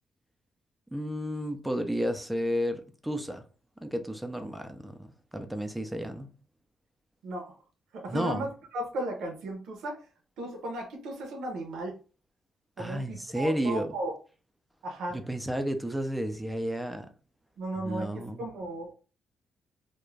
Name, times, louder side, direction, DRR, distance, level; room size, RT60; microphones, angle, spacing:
voice 1, 0.9-3.4 3.8-6.3 8.1-8.5 12.8-13.9 15.1-17.1 17.8-18.5, equal, 5° right, 0.4 m, -32 dB
voice 2, 7.2-7.5 7.9-8.5 8.7-10.0 10.4-11.9 12.8-14.1 14.8-15.2 17.6-18.9, right 1 dB, 85° right, 0.7 m, -35 dB
2.4 x 2.2 x 3.1 m
cardioid pair, 115°, 0 cm